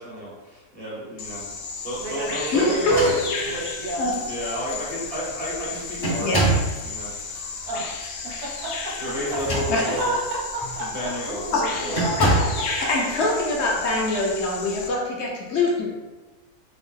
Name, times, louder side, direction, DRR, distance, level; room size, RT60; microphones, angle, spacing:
voice 1, 0.0-3.2 4.2-7.1 8.5-8.6 9.0-10.2 10.8-12.0 12.4-12.6, equal, 30° right, -7 dB, 0.9 m, -32 dB
Bird vocalization bird call bird song, 1.2-14.9, left 4 dB, 90° left, 0.5 m, -34 dB
voice 2, 2.0-3.0 3.4-4.1 7.7-8.1 8.4-8.7 9.3-9.4 9.8-12.2, right 2 dB, 90° right, -4 dB, 1.5 m, -31 dB
voice 3, 2.5-3.1 4.0-4.1 6.2-6.4 9.7-9.9 11.5-11.9 12.2-12.3 12.6-15.9, left 2 dB, 60° left, -1 dB, 0.8 m, -23 dB
sound 1, 2.8-3.7 4.5-4.6 5.0-5.4 6.0-6.8 9.2-10.1 10.6-10.8 11.9-12.6, right 2 dB, 25° left, 0.5 m, -25 dB
3.4 x 2.4 x 3.7 m, 1.2 s
omnidirectional pair, 1.6 m